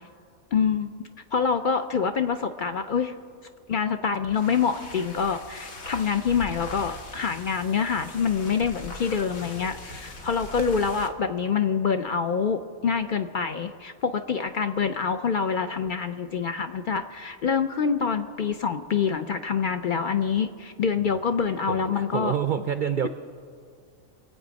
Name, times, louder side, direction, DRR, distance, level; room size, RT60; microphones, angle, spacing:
voice 1, 0.5-3.1 3.7-22.3, left 6 dB, 60° left, 8 dB, 0.5 m, -26 dB
sound 1, 4.2-11.2, left 2 dB, 85° left, 1.6 m, -41 dB
voice 2, 21.7-23.1, right 8 dB, 60° right, 10 dB, 0.5 m, -27 dB
25.5 x 8.5 x 5.2 m, 2.2 s
omnidirectional pair, 1.4 m